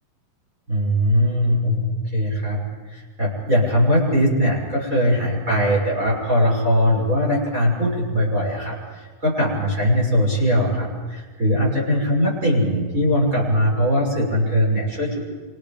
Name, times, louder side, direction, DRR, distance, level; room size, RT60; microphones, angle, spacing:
voice 1, 0.7-2.6 2.9-15.2, equal, 20° right, -4 dB, 6.1 m, -20 dB
29.5 x 25.5 x 5.2 m, 1.4 s
omnidirectional pair, 4.1 m